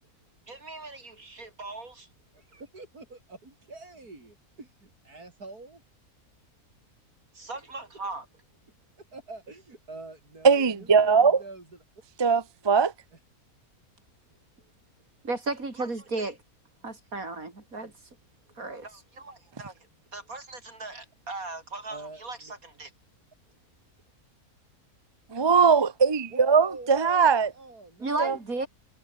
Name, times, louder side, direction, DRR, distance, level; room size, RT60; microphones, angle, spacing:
voice 1, 0.5-2.1 7.3-8.2 15.2-16.4 16.8-17.9 18.6-19.7 20.1-22.4 22.6-22.9 28.0-28.7, right 3 dB, 65° right, 4.9 m, -35 dB
voice 2, 2.3-5.8 7.5-7.7 9.0-11.8 17.3-17.4 21.9-22.5 26.3-28.4, right 3 dB, 85° right, 5.3 m, -44 dB
voice 3, 10.4-11.4 12.2-12.9 25.3-27.5 28.2-28.4, right 5 dB, 25° right, 0.7 m, -20 dB
omnidirectional pair, 1.6 m